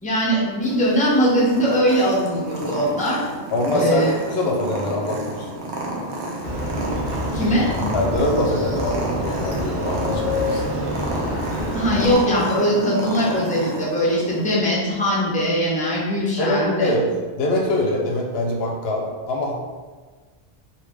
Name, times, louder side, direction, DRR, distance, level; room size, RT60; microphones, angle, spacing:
voice 1, 0.0-3.2 3.7-4.1 7.3-7.7 11.7-16.9, equal, 10° left, -6 dB, 0.6 m, -20 dB
Purr, 0.6-14.5, right 1 dB, 85° right, 0.9 m, -31 dB
voice 2, 3.5-5.5 7.9-10.9 16.4-17.1 17.4-19.5, left 1 dB, 75° left, 0 dB, 0.8 m, -23 dB
Motorcycle, 6.4-12.1, left 1 dB, 60° right, 1.0 m, -27 dB
3.2 x 2.7 x 3.4 m, 1.4 s
omnidirectional pair, 1.1 m